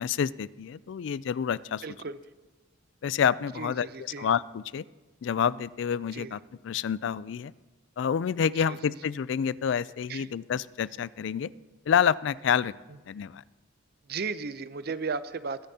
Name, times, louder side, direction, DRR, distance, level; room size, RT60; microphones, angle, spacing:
voice 1, 0.0-1.8 3.0-4.8 5.2-7.5 8.0-11.5 11.9-12.7 13.1-13.4, left 7 dB, 65° left, 20 dB, 0.3 m, -28 dB
voice 2, 1.8-2.2 3.6-4.3 6.1-6.3 8.7-8.8 10.1-10.3 14.1-15.7, right 4 dB, 50° right, 13 dB, 0.6 m, -35 dB
21.5 x 10.0 x 2.8 m, 1.2 s
head